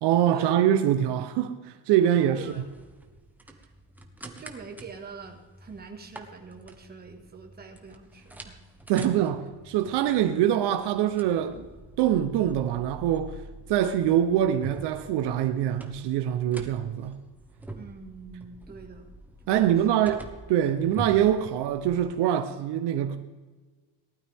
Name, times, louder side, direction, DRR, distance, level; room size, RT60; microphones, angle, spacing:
voice 1, 0.0-2.4 8.9-11.7 12.0-13.4 13.7-17.2 19.5-23.2, right 10 dB, 70° right, 0.9 m, -24 dB
sound 1, 2.3-22.2, right 2 dB, 5° right, 1.1 m, -46 dB
voice 2, 3.4-3.7 4.2-8.6 17.8-19.1 19.5-20.0, right 5 dB, 20° right, 1.8 m, -45 dB
18.5 x 12.5 x 3.6 m
cardioid pair, 165°, 43 cm